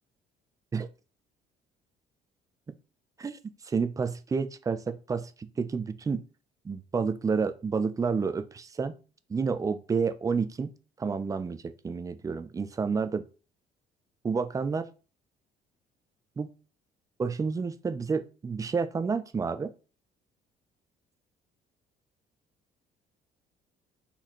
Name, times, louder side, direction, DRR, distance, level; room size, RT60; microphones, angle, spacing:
voice 1, 3.7-6.2 6.6-9.0 9.3-13.2 14.2-14.9 16.4-16.5 17.2-19.7, right 5 dB, 20° right, 0.4 m, -30 dB
4.2 x 4.1 x 3.0 m
cardioid pair, 110°, 17 cm